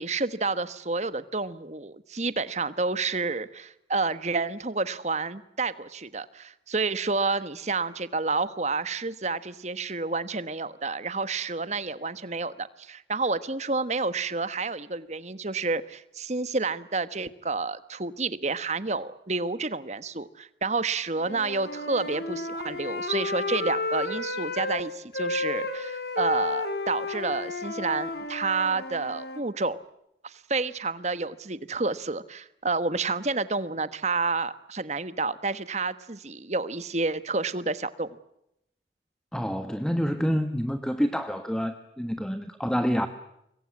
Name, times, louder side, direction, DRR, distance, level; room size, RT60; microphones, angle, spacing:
voice 1, 0.0-29.8 30.2-38.2, right 3 dB, 35° right, 14 dB, 1.2 m, -29 dB
Wind instrument woodwind instrument, 21.2-24.8 25.1-29.4, left 2 dB, 60° left, 3.7 m, -32 dB
voice 2, 39.3-43.1, equal, 5° left, 8 dB, 1.3 m, -27 dB
26.0 x 21.5 x 9.6 m, 0.81 s
head